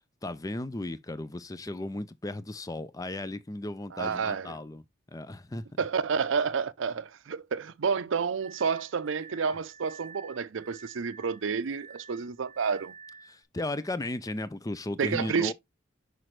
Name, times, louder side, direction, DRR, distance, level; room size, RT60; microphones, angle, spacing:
voice 1, 0.2-4.8 5.1-5.7 13.3-15.5, left 1 dB, 20° left, 0.5 m, -35 dB
voice 2, 3.9-4.6 5.8-12.9 15.0-15.5, right 5 dB, 75° right, 0.5 m, -30 dB
Glass, 8.4-13.4, right 5 dB, 35° right, 1.1 m, -50 dB
6.0 x 5.0 x 3.2 m
head